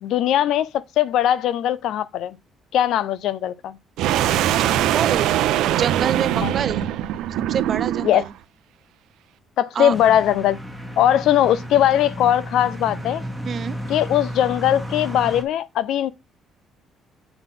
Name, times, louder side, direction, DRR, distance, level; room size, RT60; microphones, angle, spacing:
voice 1, 0.0-2.4 2.7-3.8 6.4-6.5 8.0-8.2 9.6-10.6 11.0-13.2 13.9-16.1, left 11 dB, 75° left, 0.5 m, -20 dB
sound 1, 4.0-8.3, right 12 dB, 90° right, 0.6 m, -22 dB
voice 2, 4.6-6.9 7.5-8.2 9.8-9.9 13.4-13.8, right 7 dB, 45° right, 0.5 m, -27 dB
sound 2, 9.9-15.4, equal, ahead, 1.4 m, -33 dB
7.8 x 3.8 x 5.7 m
cardioid pair, 130°, 0 cm